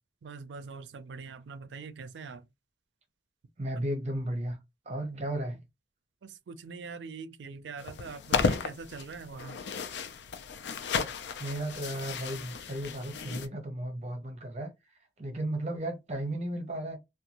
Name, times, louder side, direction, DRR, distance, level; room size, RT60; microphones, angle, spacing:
voice 1, 0.2-2.5 5.0-5.2 6.2-9.6, right 4 dB, 85° right, 0.4 m, -43 dB
voice 2, 3.6-4.6 4.9-5.6 11.4-14.7 15.2-17.0, right 1 dB, 40° right, 0.6 m, -34 dB
sound 1, 7.8-13.5, left 5 dB, 80° left, 0.4 m, -34 dB
2.6 x 2.2 x 2.8 m
head